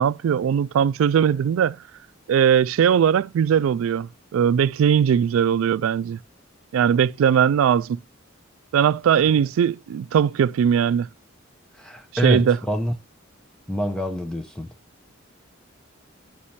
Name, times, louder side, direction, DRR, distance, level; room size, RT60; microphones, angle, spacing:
voice 1, 0.0-1.8 2.3-6.2 6.7-8.0 8.7-11.1 12.2-12.6, right 8 dB, 90° right, 0.3 m, -20 dB
voice 2, 11.8-12.9 13.7-14.7, equal, 5° left, 0.5 m, -26 dB
10.0 x 5.3 x 2.7 m
head